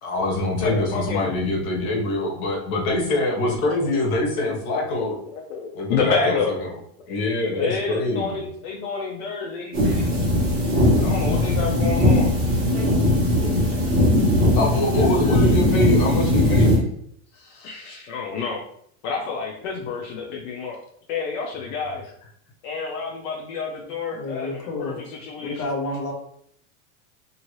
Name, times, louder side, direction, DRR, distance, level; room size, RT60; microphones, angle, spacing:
voice 1, 0.0-5.2 5.7-6.3 7.1-8.5 14.6-16.8, left 2 dB, 75° left, -1 dB, 1.2 m, -24 dB
voice 2, 0.6-1.4 2.7-2.8 3.5-3.9 4.3-6.5 7.5-10.1 10.8-12.4 14.4-15.5 17.3-18.6 19.0-20.8 21.1-22.1 22.6-25.6, left 5 dB, 60° left, -1 dB, 0.7 m, -29 dB
sound 1, 9.7-16.8, left 1 dB, 20° right, 1.2 m, -19 dB
voice 3, 24.1-25.0 25.4-26.1, left 2 dB, 35° left, -2 dB, 1.0 m, -29 dB
2.7 x 2.7 x 3.0 m, 0.66 s
supercardioid pair, 150°, 42 cm